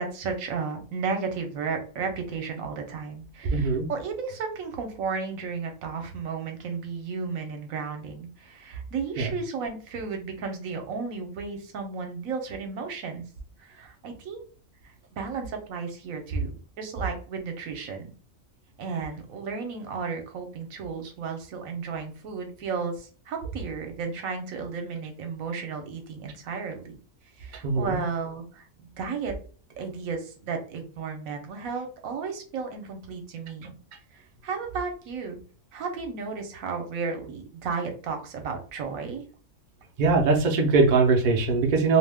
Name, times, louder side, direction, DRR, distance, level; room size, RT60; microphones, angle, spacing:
voice 1, 0.0-13.2 13.6-14.4 15.1-18.1 18.8-27.0 27.4-29.3 29.8-33.7 34.1-35.4 35.7-39.2, right 5 dB, 75° right, 4 dB, 1.1 m, -33 dB
voice 2, 3.5-3.9 9.2-9.3 27.6-28.0 40.0-42.0, right 4 dB, 55° right, 2 dB, 0.5 m, -21 dB
2.6 x 2.1 x 3.4 m, 0.40 s
omnidirectional pair, 1.5 m